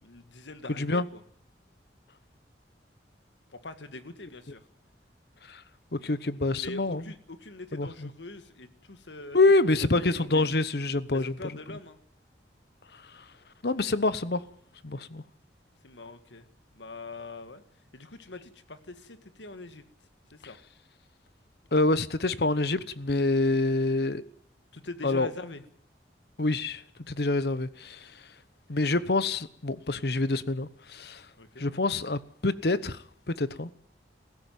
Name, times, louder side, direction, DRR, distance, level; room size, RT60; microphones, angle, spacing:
voice 1, 0.0-1.2 3.5-4.6 6.6-9.4 9.7-10.5 11.1-12.0 15.8-16.5 16.7-17.6 17.9-19.8 20.3-20.6 24.7-25.6 31.4-31.7, left 2 dB, 90° left, 1.7 m, -43 dB
voice 2, 5.9-7.0 7.7-8.1 9.3-11.3 12.9-13.3 13.6-14.4 14.8-15.2 21.7-24.2 25.0-25.3 26.4-28.3 28.7-31.3 31.6-33.7, left 2 dB, 60° left, 1.0 m, -27 dB
18.5 x 15.5 x 9.3 m
head